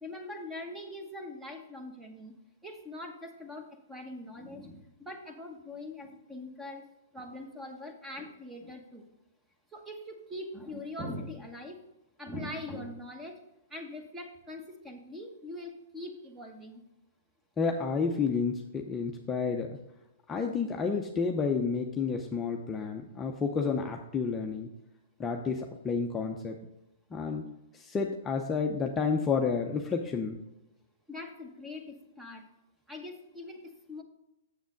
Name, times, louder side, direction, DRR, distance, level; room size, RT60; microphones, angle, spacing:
voice 1, 0.0-2.3 2.6-6.8 7.1-9.1 9.7-11.8 12.2-13.4 13.7-16.8 31.1-32.4 32.9-34.0, left 1 dB, 10° right, 4 dB, 1.2 m, -42 dB
voice 2, 17.6-19.8 20.3-24.7 25.2-26.6 27.1-27.5 27.7-30.4, left 5 dB, 15° left, 1 dB, 0.6 m, -30 dB
7.3 x 7.1 x 3.9 m, 0.91 s
hypercardioid pair, 135°, 0 cm